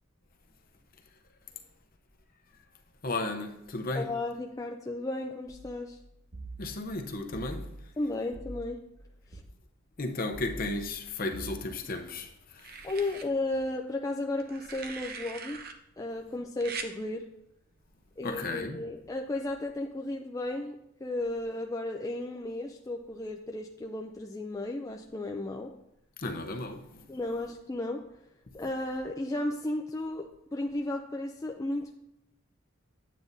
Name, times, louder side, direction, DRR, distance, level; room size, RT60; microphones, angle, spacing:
voice 1, 3.0-4.1 6.6-7.7 10.0-12.9 18.2-18.8 26.2-27.1, left 2 dB, 45° left, 0.7 m, -34 dB
voice 2, 3.9-6.0 8.0-8.8 9.3-9.4 12.8-15.6 16.0-17.3 18.2-20.8 21.0-25.7 27.1-28.0 28.5-31.9, left 2 dB, 15° left, 0.4 m, -34 dB
sound 1, 5.5-9.4 10.3-11.6, right 1 dB, 90° right, 1.6 m, -45 dB
sound 2, 11.3-12.0 12.6-13.3 14.4-15.7 16.6-16.9 18.3-18.5, right 5 dB, 45° right, 0.7 m, -42 dB
9.2 x 8.3 x 2.7 m
head